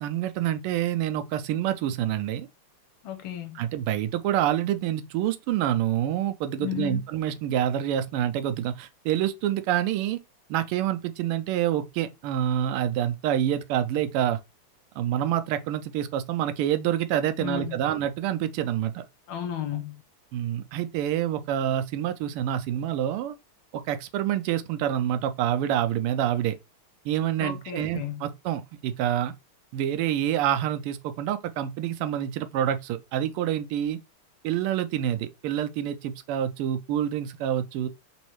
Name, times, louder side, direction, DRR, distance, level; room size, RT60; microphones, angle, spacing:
voice 1, 0.0-2.5 3.6-10.2 10.5-14.4 15.0-19.0 20.3-23.4 23.7-26.6 27.0-29.3 29.7-34.0 34.4-37.9, right 11 dB, 90° right, 1.5 m, -27 dB
voice 2, 3.0-3.6 6.6-7.0 17.4-17.8 19.3-20.0 27.4-28.2, left 10 dB, 75° left, 1.6 m, -33 dB
3.9 x 3.1 x 3.1 m
omnidirectional pair, 2.4 m